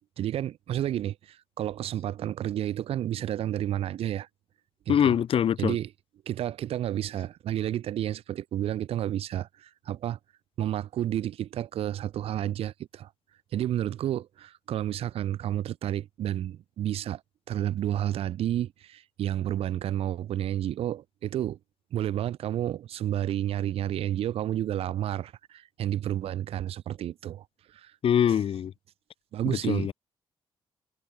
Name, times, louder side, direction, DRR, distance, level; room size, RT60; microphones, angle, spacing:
voice 1, 0.2-4.3 4.9-5.1 5.6-5.9 6.3-10.2 10.6-13.1 13.5-17.2 17.5-21.6 21.9-27.9 29.3-29.9, right 11 dB, 80° right, 2.5 m, -31 dB
voice 2, 4.9-5.8 28.0-28.7 29.5-29.9, left 9 dB, 65° left, 3.8 m, -24 dB
cardioid pair, 80°, 10 cm